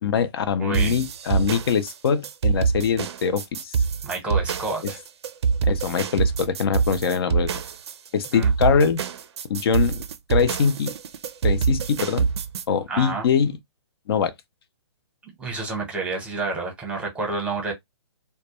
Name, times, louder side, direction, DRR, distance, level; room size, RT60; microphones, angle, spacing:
voice 1, 0.0-3.8 5.6-7.5 8.1-9.0 9.5-10.0 10.3-10.9 11.4-12.3 12.7-13.6 14.1-14.3, left 6 dB, 55° left, 0.4 m, -23 dB
voice 2, 0.6-1.0 4.0-5.0 8.3-8.5 12.9-13.3 15.4-17.7, right 3 dB, 5° right, 0.8 m, -29 dB
sound 1, 0.7-12.6, right 5 dB, 65° right, 0.4 m, -25 dB
2.2 x 2.1 x 2.8 m
hypercardioid pair, 140°, 15 cm